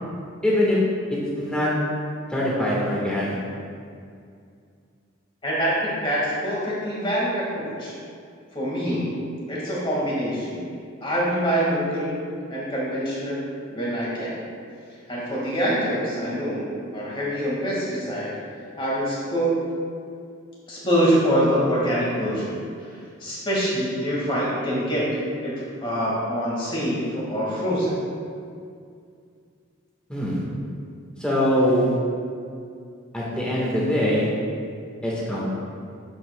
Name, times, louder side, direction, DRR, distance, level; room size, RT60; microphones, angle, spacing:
voice 1, 0.4-0.8 1.3-1.7 2.3-3.4 30.1-30.4 31.2-31.9 33.1-34.3 35.0-35.4, equal, 5° left, -6 dB, 1.3 m, -22 dB
voice 2, 5.4-7.9 8.5-9.2 9.5-10.7 11.0-12.2 12.5-14.4 15.1-18.4 18.8-19.7 20.7-22.6 23.2-25.1 25.4-28.0, equal, 25° left, -6 dB, 1.7 m, -25 dB
12.0 x 5.5 x 2.2 m, 2.3 s
head